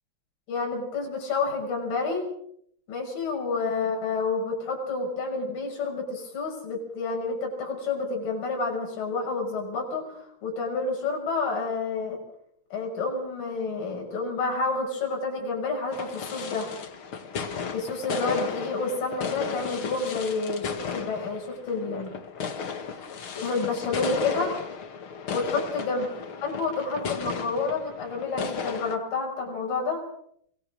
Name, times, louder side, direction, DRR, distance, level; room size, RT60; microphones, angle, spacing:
voice 1, 0.5-2.3 2.9-12.2 12.7-16.7 17.7-22.1 23.4-24.5 25.3-26.1 26.4-30.0, left 3 dB, 60° left, -1 dB, 7.7 m, -29 dB
sound 1, 15.9-29.0, left 6 dB, 45° left, 2.0 m, -34 dB
24.5 x 20.5 x 6.5 m, 0.68 s
omnidirectional pair, 4.4 m